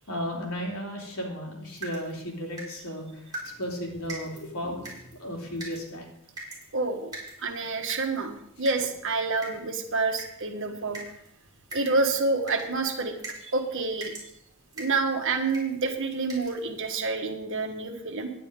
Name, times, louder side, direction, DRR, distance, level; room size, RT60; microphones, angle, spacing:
voice 1, 0.1-6.1, equal, 75° left, -1 dB, 3.2 m, -35 dB
sound 1, 1.6-17.0, right 2 dB, 20° right, 3.8 m, -45 dB
voice 2, 6.7-7.1 7.4-11.0 11.7-13.1 13.4-14.1 14.8-18.3, right 3 dB, 60° right, 5 dB, 1.4 m, -28 dB
9.8 x 9.8 x 5.1 m, 0.77 s
head